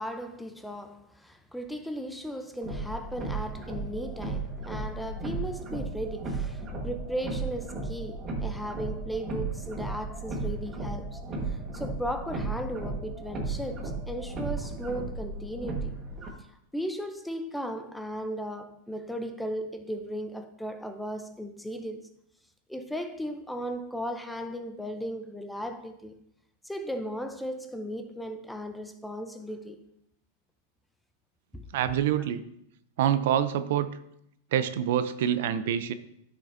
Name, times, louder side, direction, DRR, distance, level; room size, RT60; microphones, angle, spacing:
voice 1, 0.0-11.2 11.5-15.9 16.7-22.0 22.7-26.1 26.6-29.8 31.5-31.6, equal, 5° left, 0.6 m, -36 dB
sound 1, 2.6-16.3, right 3 dB, 25° right, 1.4 m, -35 dB
voice 2, 31.7-32.4 33.0-33.9 34.5-35.9, right 10 dB, 65° right, 0.5 m, -26 dB
10.0 x 6.0 x 2.6 m
supercardioid pair, 145°, 0 cm